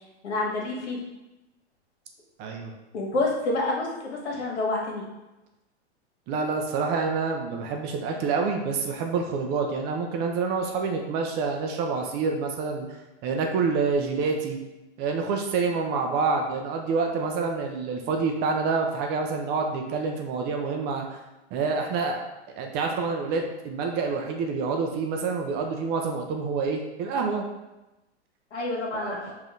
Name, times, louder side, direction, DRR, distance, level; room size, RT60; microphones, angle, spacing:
voice 1, 0.2-1.0 2.9-5.0 28.5-29.2, left 2 dB, 70° left, -2 dB, 1.5 m, -28 dB
voice 2, 2.4-2.7 6.3-12.9 13.2-14.6 15.0-21.2 21.5-22.2 22.5-27.5 28.9-29.2, right 4 dB, 30° right, 3 dB, 0.5 m, -27 dB
5.2 x 2.7 x 3.7 m, 1.0 s
hypercardioid pair, 115°, 34 cm